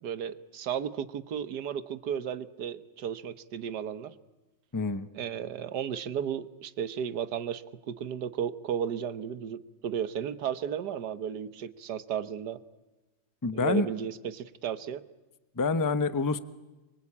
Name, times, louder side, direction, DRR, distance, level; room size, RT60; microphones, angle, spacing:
voice 1, 0.0-4.1 5.1-12.6 13.5-15.0, right 8 dB, 60° right, 13 dB, 1.6 m, -34 dB
voice 2, 4.7-5.1 13.4-13.9 15.6-16.4, left 4 dB, 25° left, 13 dB, 0.4 m, -27 dB
28.0 x 24.0 x 8.6 m, 1.1 s
omnidirectional pair, 2.1 m